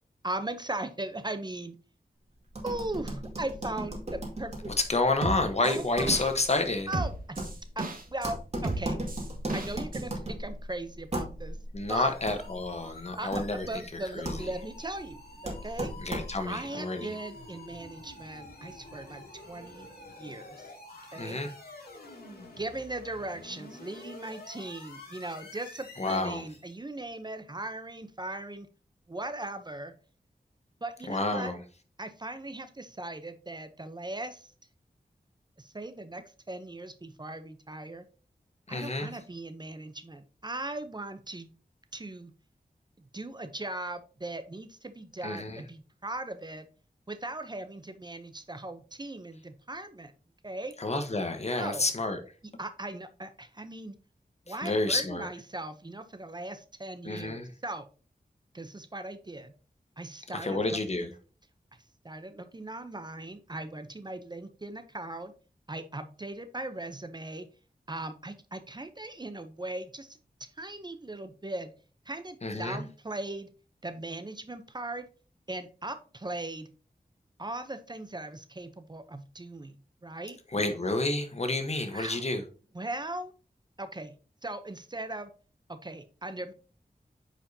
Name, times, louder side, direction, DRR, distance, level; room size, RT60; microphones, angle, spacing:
voice 1, 0.2-1.8 2.6-4.5 5.6-6.2 6.9-9.0 9.5-11.6 11.9-12.1 13.0-15.9 16.5-19.9 20.2-20.7 21.1-21.4 22.6-28.7 29.1-29.9 30.8-31.5 32.0-34.5 35.6-38.1 38.7-41.5 41.9-42.3 43.0-46.7 47.1-50.1 50.4-50.7 51.5-51.8 52.6-54.0 54.5-57.9 58.5-59.5 60.0-60.6 60.9-61.1 62.0-65.3 65.7-67.5 67.9-70.2 70.6-71.7 72.1-73.5 73.8-75.1 75.5-76.7 77.4-79.7 80.0-80.4 81.9-82.3 82.7-83.3 83.8-84.1 84.4-85.3 85.7-86.5, right 2 dB, 30° right, 0.7 m, -38 dB
sound 1, 2.5-16.6, right 1 dB, 45° right, 2.1 m, -38 dB
voice 2, 4.7-6.9 11.7-13.7 14.1-14.5 16.0-17.1 21.1-21.5 26.0-26.5 31.1-31.6 38.7-39.1 45.2-45.6 50.8-52.2 54.5-55.3 57.0-57.5 60.4-61.1 72.4-72.8 80.5-82.4, left 2 dB, 45° left, 1.1 m, -29 dB
sound 2, 4.8-4.9 5.2-6.6 6.9-8.3 8.6-10.0 10.3-10.4, right 2 dB, 65° right, 1.3 m, -34 dB
sound 3, 11.9-26.8, left 2 dB, 85° left, 2.4 m, -49 dB
8.7 x 5.0 x 2.7 m
wide cardioid pair, 90°, 16 cm